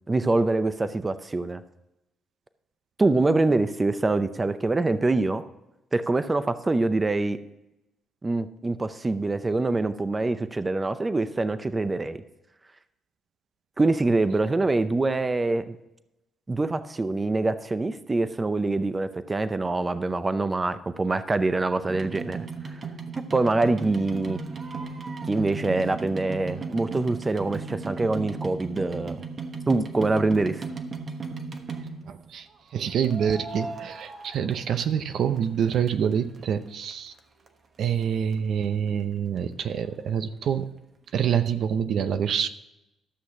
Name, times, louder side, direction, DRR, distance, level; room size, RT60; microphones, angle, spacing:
voice 1, 0.1-1.6 3.0-5.4 5.9-7.4 8.2-12.2 13.8-15.8 16.5-22.4 22.7-22.8 23.3-24.4 25.3-29.2 29.7-30.6, right 2 dB, 25° right, 12 dB, 0.6 m, -25 dB
sound 1, 21.9-32.2 33.0-35.1 35.4-36.4 36.9-37.0 37.2-37.3 37.5-37.6 38.0-38.1 38.3-38.4, right 4 dB, 45° right, 1.1 m, -36 dB
voice 2, 32.0-37.1 37.8-40.7 41.1-42.5, right 8 dB, 65° right, 11 dB, 0.6 m, -26 dB
13.0 x 6.4 x 5.9 m, 0.92 s
cardioid pair, 90°, 0 cm